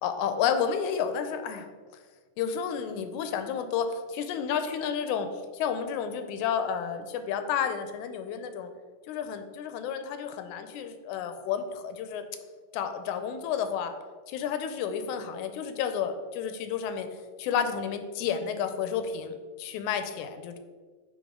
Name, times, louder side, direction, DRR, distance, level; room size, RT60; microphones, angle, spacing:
voice 1, 0.0-1.7 2.4-8.7 9.1-12.2 12.7-13.9 14.3-17.1 17.4-20.6, left 7 dB, 85° left, 8 dB, 2.0 m, -31 dB
10.0 x 3.6 x 3.7 m, 1.5 s
omnidirectional pair, 3.4 m